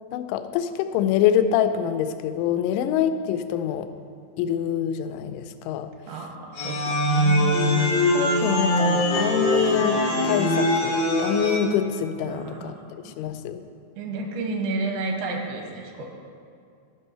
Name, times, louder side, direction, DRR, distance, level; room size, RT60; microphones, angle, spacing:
voice 1, 0.1-3.9 4.4-5.9 6.8-6.9 8.1-12.7 13.1-13.6, left 9 dB, 90° left, 9 dB, 2.9 m, -25 dB
voice 2, 6.1-7.6 12.2-13.1 14.0-16.1, right 3 dB, 85° right, 2 dB, 3.2 m, -31 dB
sound 1, 6.6-11.6, left 1 dB, 70° left, 1.3 m, -22 dB
12.0 x 5.4 x 5.5 m, 2.3 s
omnidirectional pair, 5.2 m